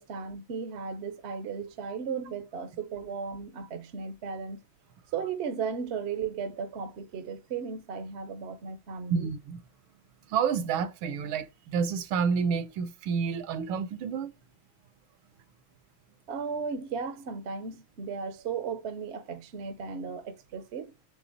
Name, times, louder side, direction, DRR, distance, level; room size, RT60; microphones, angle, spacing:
voice 1, 0.0-4.6 5.1-9.3 16.3-20.9, right 6 dB, 55° right, 0.7 m, -35 dB
voice 2, 9.1-9.6 10.3-14.3, right 6 dB, 80° right, 1.6 m, -29 dB
8.0 x 3.4 x 3.9 m
omnidirectional pair, 2.2 m